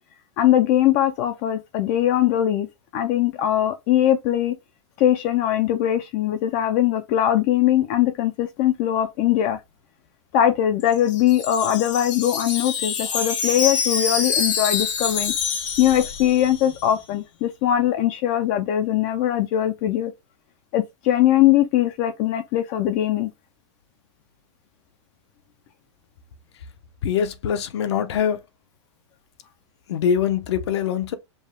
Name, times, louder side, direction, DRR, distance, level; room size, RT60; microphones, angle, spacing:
voice 1, 0.4-2.7 2.9-4.6 5.0-9.6 10.3-15.3 15.8-20.1 20.7-23.3, left 12 dB, 30° left, 0.4 m, -21 dB
Wind chime, 10.8-16.8, left 6 dB, 80° left, 2.1 m, -26 dB
voice 2, 27.0-28.4 29.9-31.2, left 8 dB, 65° left, 0.8 m, -23 dB
5.4 x 2.2 x 3.6 m
supercardioid pair, 165°, 15 cm